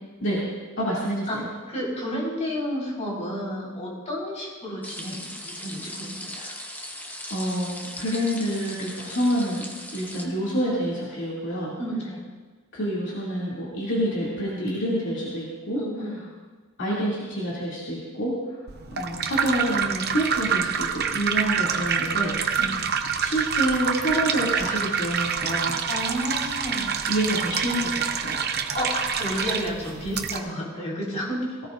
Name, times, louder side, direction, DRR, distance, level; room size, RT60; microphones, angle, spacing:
voice 1, 0.8-1.5 7.3-9.6 9.9-11.7 12.7-15.8 16.8-18.4 18.9-22.7 23.2-25.8 27.1-28.4, equal, 60° left, -7 dB, 2.7 m, -27 dB
voice 2, 1.7-6.5 11.8-12.2 15.7-16.2 22.6-22.8 25.9-26.9 28.7-31.4, equal, 30° left, -5 dB, 4.5 m, -31 dB
sound 1, 4.8-10.3, left 1 dB, 10° left, 1.0 m, -38 dB
sound 2, 18.7-30.4, right 7 dB, 50° right, 0.8 m, -27 dB
18.0 x 16.0 x 2.6 m, 1.4 s
head